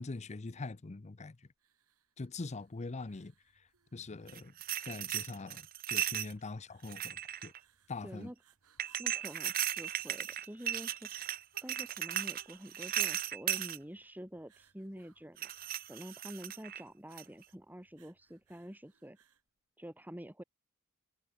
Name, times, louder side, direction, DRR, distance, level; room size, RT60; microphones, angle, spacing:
voice 1, 0.0-1.5 2.2-4.5 4.8-7.5 7.9-8.3, left 3 dB, 30° left, 0.6 m, -43 dB
sound 1, 1.6-19.5, right 5 dB, 75° right, 5.2 m, -68 dB
sound 2, 4.3-6.3 6.8-7.6 8.8-13.8 15.4-16.8 17.2-17.4, right 11 dB, 40° right, 0.6 m, -36 dB
voice 2, 8.0-8.3 9.0-11.3 11.6-15.5 15.9-19.2 19.8-20.4, equal, 10° right, 2.8 m, -47 dB
head